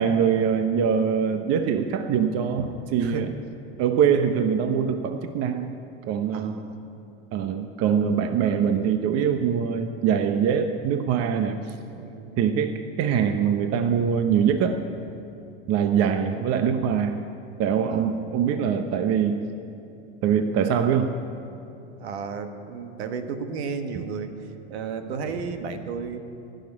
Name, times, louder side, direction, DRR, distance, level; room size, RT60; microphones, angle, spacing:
voice 1, 0.0-2.6 2.9-3.3 3.8-5.7 6.1-6.5 7.3-11.6 12.4-14.8 15.7-17.2 17.6-19.4 20.2-21.1 23.9-24.0, right 7 dB, 50° right, 8 dB, 0.9 m, -23 dB
voice 2, 3.0-3.3 6.3-6.8 11.9-12.4 17.9-18.2 21.7-24.3 24.7-26.2, right 5 dB, 75° right, 8 dB, 1.3 m, -33 dB
16.5 x 6.6 x 9.8 m, 2.7 s
hypercardioid pair, 95°, 32 cm